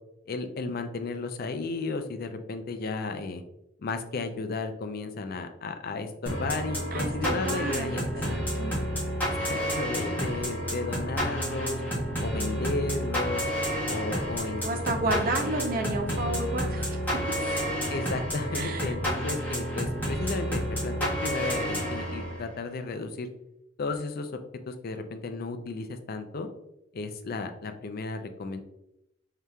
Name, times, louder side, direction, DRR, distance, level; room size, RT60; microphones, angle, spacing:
voice 1, 0.3-3.4 3.8-8.4 9.4-11.8 12.2-13.4 13.9-15.5 17.9-23.3 23.8-24.3 24.7-26.5 26.9-28.6, left 3 dB, 50° left, 8 dB, 0.4 m, -34 dB
sound 1, 6.3-22.6, equal, 10° left, 1.2 m, -30 dB
voice 2, 6.9-8.7 14.6-17.2 18.6-18.9, right 2 dB, 45° right, 5 dB, 0.5 m, -32 dB
4.9 x 2.8 x 2.2 m, 0.84 s
head